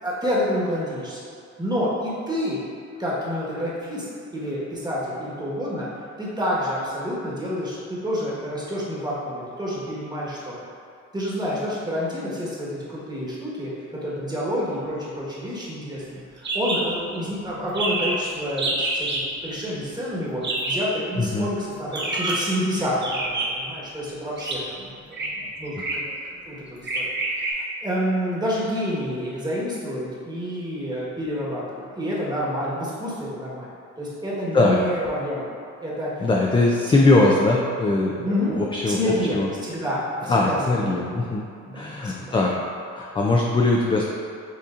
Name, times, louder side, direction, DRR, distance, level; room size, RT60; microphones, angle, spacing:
voice 1, 0.0-1.2 1.6-2.6 3.0-4.1 4.3-5.9 6.2-10.5 11.1-19.1 19.4-26.0 26.4-33.7 34.0-35.4 35.8-36.1 36.9-37.0 38.2-41.1 41.7-42.4, equal, 15° right, -7 dB, 1.3 m, -28 dB
sound 1, 16.4-16.8 17.1-17.2 17.4-17.5 17.7-18.2 18.6-19.2 20.4-20.9 21.9-22.5 23.0-23.7 24.4-24.6 25.1-25.3 25.7-26.1 26.8-27.5, right 2 dB, 35° right, 0.8 m, -27 dB
voice 2, 21.2-21.5 34.5-34.8 36.2-39.5 40.3-41.5 41.7-42.5 42.9-44.0, left 2 dB, 20° left, -2 dB, 0.3 m, -21 dB
6.9 x 2.7 x 2.5 m, 2.4 s
cardioid pair, 90°, 30 cm